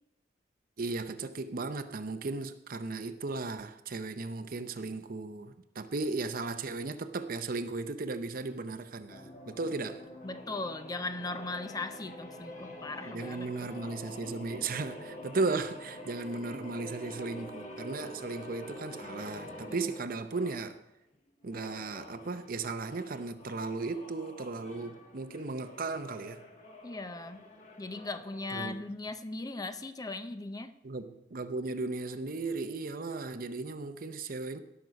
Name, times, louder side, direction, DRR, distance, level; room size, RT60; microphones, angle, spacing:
voice 1, 0.8-10.0 13.0-20.8 21.4-26.4 28.5-28.8 30.8-34.6, right 3 dB, 55° right, 0.7 m, -36 dB
sound 1, 9.1-20.8 21.4-28.6, left 1 dB, 45° left, 1.7 m, -47 dB
voice 2, 10.2-13.5 19.8-19.9 26.8-27.4 27.8-30.7, left 2 dB, 20° left, 0.6 m, -38 dB
17.0 x 6.2 x 5.2 m
head